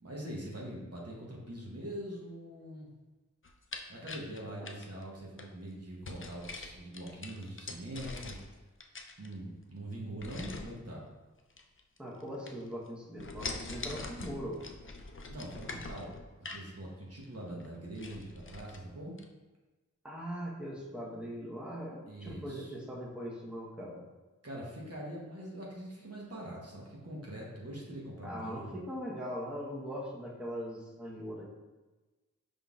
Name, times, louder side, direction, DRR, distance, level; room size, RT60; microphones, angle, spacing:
voice 1, 0.0-2.9 3.9-8.4 9.2-11.0 15.3-16.1 16.5-19.2 22.1-22.7 24.4-28.8, right 1 dB, 50° right, -4 dB, 1.0 m, -43 dB
sound 1, 3.4-5.5 6.0-8.5 8.8-9.6 10.2-10.8 11.5-12.2 12.5-12.9 13.2-16.7 17.2-17.3 17.6-17.7 17.9-18.8 19.2-19.3, left 3 dB, 40° left, 0.4 m, -43 dB
voice 2, 12.0-14.6 20.0-24.0 28.2-31.5, equal, 5° right, -5 dB, 1.0 m, -40 dB
5.3 x 3.7 x 2.4 m, 1.2 s
wide cardioid pair, 50°, 31 cm